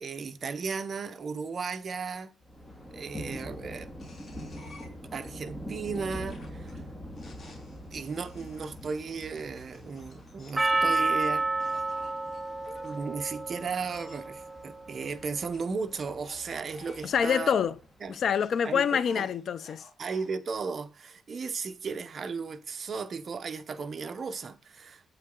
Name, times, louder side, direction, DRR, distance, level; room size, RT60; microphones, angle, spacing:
voice 1, 0.0-2.3 2.9-3.9 4.6-4.7 5.1-6.8 7.9-11.8 12.8-17.6 18.0-18.2 18.6-19.3 20.0-25.0, right 5 dB, 35° right, 0.9 m, -35 dB
Thunder, 2.4-18.4, equal, 15° left, 2.3 m, -45 dB
sound 1, 4.0-5.3 5.9-10.7 11.6-13.0 13.8-14.3 15.5-17.2 18.1-20.3, left 2 dB, 35° left, 3.7 m, -54 dB
Percussion, 10.6-15.0, right 3 dB, 5° right, 0.8 m, -30 dB
voice 2, 17.0-17.7 18.1-19.8, left 7 dB, 50° left, 0.5 m, -26 dB
9.2 x 8.6 x 3.9 m
cardioid pair, 160°, 0 cm